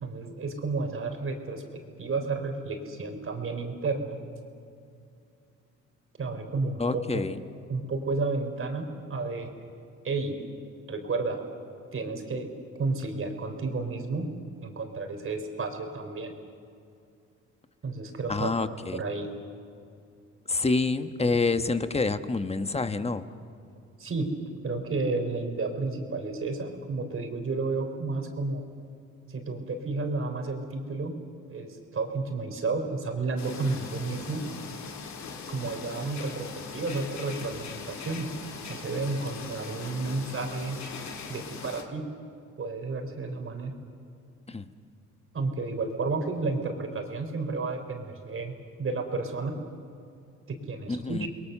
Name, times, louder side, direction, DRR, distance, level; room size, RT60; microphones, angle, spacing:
voice 1, 0.0-4.2 6.2-7.2 7.7-9.5 10.0-10.4 10.9-11.4 11.9-12.5 12.8-14.3 14.6-16.3 17.8-18.5 18.9-19.3 24.0-24.3 24.6-28.6 29.3-31.2 31.5-34.5 35.5-38.3 38.7-40.8 41.3-42.1 42.6-43.7 45.3-48.5 48.8-49.6 50.5-51.3, right 3 dB, 45° right, 5 dB, 3.8 m, -31 dB
voice 2, 6.8-7.4 18.3-19.0 20.5-23.2 44.5-44.7 50.9-51.3, left 3 dB, 20° left, 10 dB, 1.3 m, -27 dB
sound 1, 33.4-41.8, left 5 dB, 65° left, 2.3 m, -40 dB
29.0 x 21.5 x 6.8 m, 2.5 s
cardioid pair, 90°, 30 cm